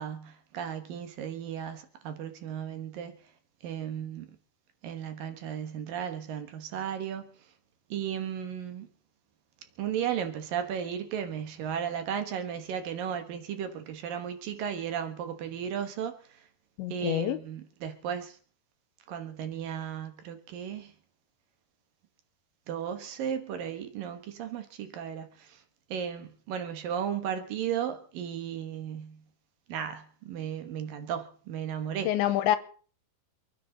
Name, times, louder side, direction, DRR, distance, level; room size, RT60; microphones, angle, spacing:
voice 1, 0.0-3.1 3.6-4.3 4.8-7.3 7.9-8.9 9.8-16.2 16.9-18.4 19.1-20.9 22.7-25.6 25.9-29.2 29.7-32.1, right 8 dB, 65° right, 2.6 m, -35 dB
voice 2, 16.8-17.4 32.1-32.6, left 12 dB, 90° left, 3.2 m, -26 dB
28.0 x 10.5 x 4.0 m
omnidirectional pair, 5.2 m